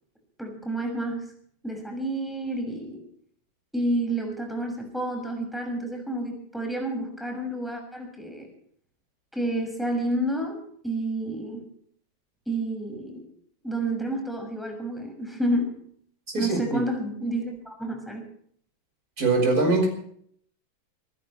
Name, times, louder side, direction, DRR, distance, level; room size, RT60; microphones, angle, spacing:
voice 1, 0.4-1.3 1.6-3.0 3.7-8.5 9.3-11.6 12.5-13.3 13.6-15.7 16.4-18.2, right 1 dB, ahead, 2 dB, 6.4 m, -30 dB
voice 2, 16.3-16.8 19.2-19.9, right 3 dB, 45° right, 1 dB, 5.9 m, -22 dB
27.0 x 15.0 x 3.3 m, 0.63 s
omnidirectional pair, 2.1 m